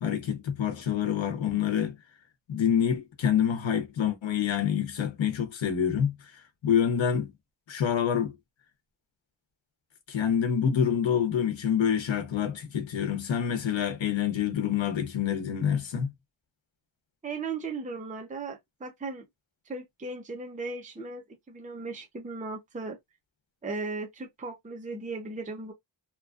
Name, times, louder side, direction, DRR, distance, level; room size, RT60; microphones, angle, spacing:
voice 1, 0.0-1.9 2.5-6.1 6.6-7.3 7.7-8.3 10.1-16.1, left 8 dB, 85° left, 0.9 m, -27 dB
voice 2, 17.2-19.2 19.6-23.0 23.6-25.7, right 3 dB, 15° right, 0.6 m, -37 dB
3.0 x 2.4 x 2.4 m
wide cardioid pair, 95°, 45 cm